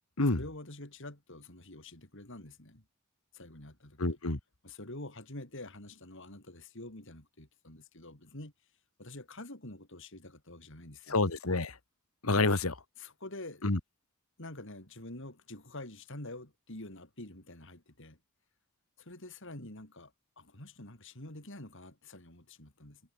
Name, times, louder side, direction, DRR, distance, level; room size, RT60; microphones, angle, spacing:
voice 1, 0.3-2.8 3.3-4.0 4.6-8.5 9.0-11.2 13.0-13.6 14.4-18.2 19.0-23.0, left 2 dB, 60° left, 4.9 m, -47 dB
voice 2, 4.0-4.4 11.1-11.8 12.2-12.7 13.6-13.8, left 2 dB, 85° left, 1.9 m, -28 dB
head